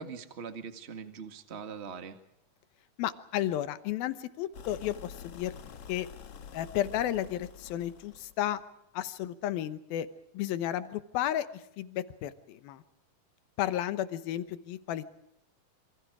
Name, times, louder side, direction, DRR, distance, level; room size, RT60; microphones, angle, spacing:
voice 1, 0.0-2.2, right 6 dB, 30° right, 8 dB, 1.2 m, -42 dB
voice 2, 3.0-5.5 5.9-6.1 6.5-8.6 8.9-10.1 10.3-12.8 13.6-15.1, left 12 dB, 80° left, 13 dB, 2.8 m, -33 dB
sound 1, 4.5-8.5, left 7 dB, 55° left, 1.8 m, -47 dB
27.0 x 25.5 x 4.9 m, 0.80 s
omnidirectional pair, 4.3 m